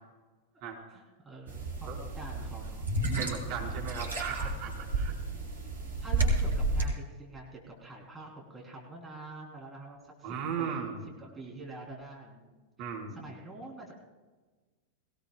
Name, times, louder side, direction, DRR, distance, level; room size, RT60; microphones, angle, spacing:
voice 1, 0.9-2.9 6.0-10.9 11.2-12.7 13.1-13.9, right 2 dB, 10° right, -3 dB, 3.5 m, -46 dB
sound 1, 1.5-6.9, right 2 dB, 70° right, 5.6 m, -32 dB
voice 2, 3.2-5.1 10.2-11.0 12.8-13.2, right 6 dB, 45° right, -2 dB, 4.5 m, -36 dB
22.0 x 18.0 x 2.3 m, 1.3 s
figure-of-eight pair, 90°, 0 cm